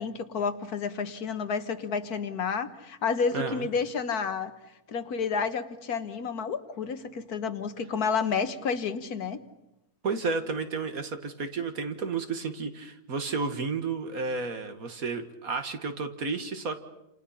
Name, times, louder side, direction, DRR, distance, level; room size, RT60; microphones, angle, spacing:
voice 1, 0.0-4.5 4.9-9.4, left 5 dB, 70° left, 10 dB, 1.8 m, -30 dB
voice 2, 3.3-3.7 10.0-16.8, right 4 dB, 60° right, 8 dB, 2.2 m, -32 dB
29.0 x 28.0 x 5.8 m, 0.89 s
omnidirectional pair, 1.7 m